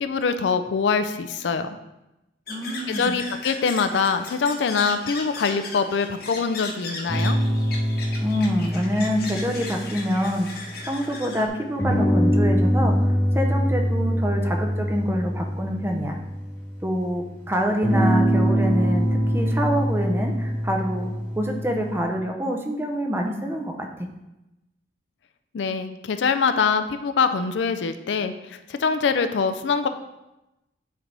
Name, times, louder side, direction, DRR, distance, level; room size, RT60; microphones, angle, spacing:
voice 1, 0.0-1.8 3.0-7.4 25.5-29.9, left 5 dB, 70° left, 9 dB, 0.4 m, -24 dB
sound 1, 2.5-11.5, left 3 dB, 55° left, 1.0 m, -37 dB
voice 2, 2.5-3.2 8.2-16.2 16.8-21.1 21.4-24.1, equal, 15° right, 2 dB, 0.6 m, -26 dB
sound 2, 7.1-11.0 11.8-16.9 17.8-22.0, equal, 15° left, 1.4 m, -24 dB
8.6 x 3.4 x 4.0 m, 0.95 s
head